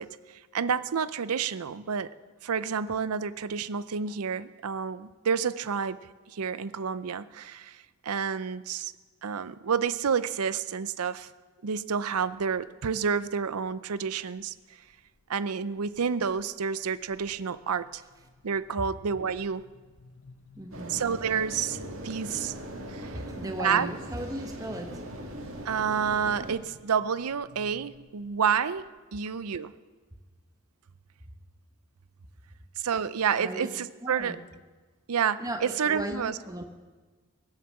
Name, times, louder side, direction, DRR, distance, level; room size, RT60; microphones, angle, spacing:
voice 1, 0.0-2.1 2.4-6.0 6.3-8.9 9.2-11.3 11.6-14.5 15.3-18.0 18.4-19.6 20.9-22.5 22.9-23.2 23.6-23.9 25.6-29.7 32.8-34.4 35.1-36.4, right 6 dB, 90° right, 16 dB, 0.6 m, -29 dB
sound 1, 12.1-12.7 13.2-13.7 14.4-15.2 15.6-16.0 16.3-28.9, left 3 dB, 60° left, 1.0 m, -54 dB
voice 2, 20.6-21.0 23.0-25.0 33.4-33.7 34.0-34.4 35.4-36.6, right 1 dB, 15° right, 4 dB, 1.1 m, -36 dB
sound 2, 20.7-26.6, right 1 dB, 65° right, 2.1 m, -40 dB
20.0 x 7.4 x 7.5 m, 1.3 s
head